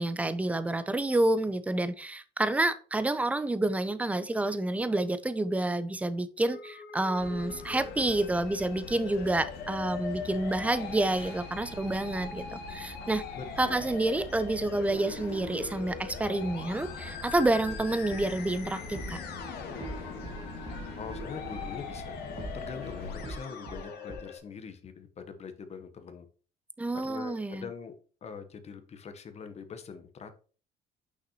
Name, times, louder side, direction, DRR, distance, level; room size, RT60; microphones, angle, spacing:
voice 1, 0.0-13.2 13.6-19.2 26.8-27.7, right 2 dB, 10° right, 0.5 m, -29 dB
Musical instrument, 6.4-24.4, left 6 dB, 70° left, 1.1 m, -42 dB
sound 1, 7.2-23.2, left 3 dB, 85° left, 2.1 m, -44 dB
voice 2, 13.3-13.9 21.0-26.3 27.0-27.9 28.2-30.4, left 6 dB, 40° left, 0.9 m, -43 dB
sound 2, 17.3-24.2, right 2 dB, 30° right, 1.8 m, -45 dB
6.0 x 5.7 x 2.8 m
cardioid pair, 110°, 17 cm